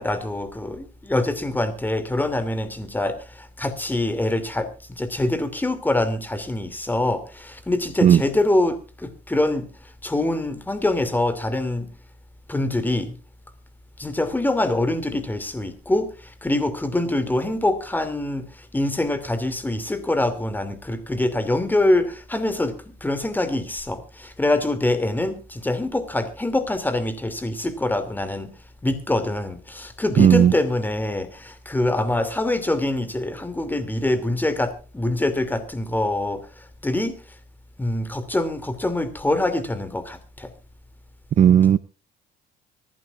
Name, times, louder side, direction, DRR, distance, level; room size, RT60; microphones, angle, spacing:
voice 1, 0.0-4.7 5.0-9.7 10.0-11.9 12.5-13.1 14.0-28.5 28.8-37.2 37.8-40.5, left 1 dB, 10° left, 11 dB, 2.7 m, -24 dB
voice 2, 30.2-30.5 41.4-41.8, right 9 dB, 40° right, 16 dB, 0.6 m, -14 dB
25.0 x 11.5 x 2.5 m, 0.36 s
cardioid pair, 110°, 17 cm